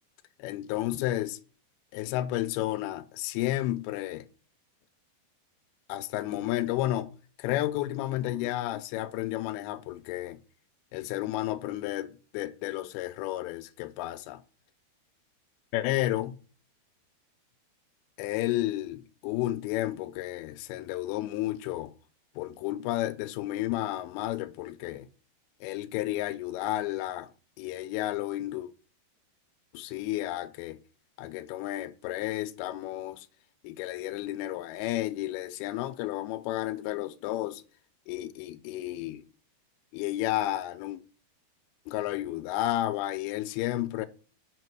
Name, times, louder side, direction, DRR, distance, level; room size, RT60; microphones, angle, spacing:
voice 1, 0.4-1.4 1.9-4.3 5.9-7.1 7.4-10.4 10.9-14.4 15.7-16.4 18.2-21.9 22.4-25.1 25.6-27.3 27.6-28.7 29.7-30.8 31.2-33.3 33.6-37.6 38.1-39.2 39.9-41.0 41.9-44.1, left 15 dB, 85° left, 2.3 m, -32 dB
6.4 x 5.2 x 4.6 m
omnidirectional pair, 4.9 m